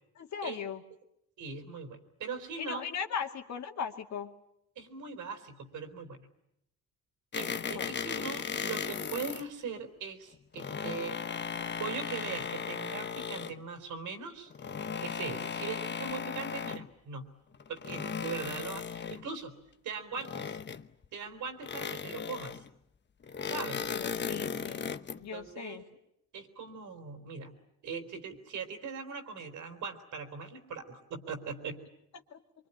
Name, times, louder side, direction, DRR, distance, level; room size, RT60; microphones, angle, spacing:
voice 1, 0.2-0.8 2.6-4.3 7.7-7.9 23.9-24.9 25.2-25.8 32.3-32.4, left 7 dB, 65° left, 4 dB, 2.3 m, -38 dB
voice 2, 1.4-2.9 4.8-6.3 7.4-11.2 11.8-14.5 15.0-17.2 17.7-19.6 19.8-20.6 21.1-22.6 23.5-23.9 25.1-25.9 26.3-27.6 27.8-31.8, right 5 dB, 75° right, 6 dB, 3.8 m, -40 dB
sound 1, 7.3-9.5 10.3-13.6 14.5-16.9 17.5-19.3 20.2-21.1 21.6-22.7 23.2-25.2, left 6 dB, 35° left, 1.0 m, -36 dB
24.5 x 24.0 x 9.9 m, 0.81 s
cardioid pair, 90°, 30 cm